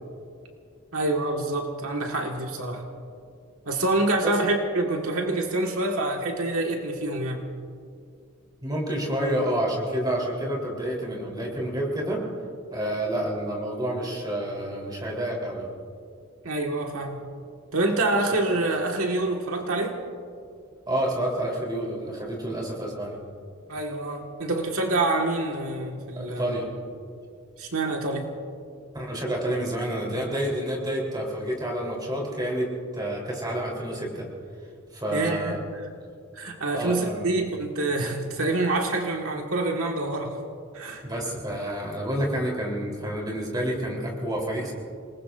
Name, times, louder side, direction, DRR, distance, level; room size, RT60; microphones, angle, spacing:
voice 1, 0.9-2.8 3.7-7.4 16.4-17.2 17.7-20.0 23.7-26.5 27.6-28.3 35.1-35.6 36.3-40.4 40.7-41.0, right 2 dB, 80° right, 1 dB, 1.7 m, -26 dB
voice 2, 8.6-12.2 12.7-15.6 20.9-23.2 26.2-26.7 28.9-34.3 34.9-35.6 36.7-37.3 41.0-44.7, right 1 dB, 20° right, -2 dB, 3.6 m, -29 dB
28.5 x 19.5 x 2.6 m, 2.3 s
head